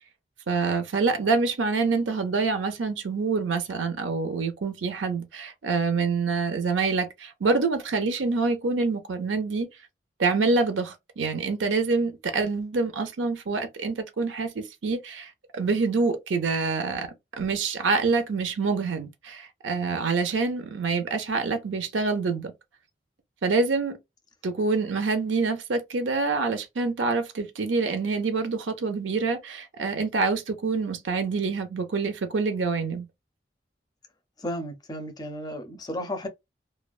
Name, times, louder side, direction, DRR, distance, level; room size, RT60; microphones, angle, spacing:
voice 1, 0.5-9.7 10.2-17.1 17.4-22.5 23.4-24.0 24.4-33.1, right 4 dB, 90° right, 0.6 m, -26 dB
voice 2, 34.4-36.3, equal, 20° left, 0.5 m, -33 dB
2.3 x 2.2 x 2.3 m
head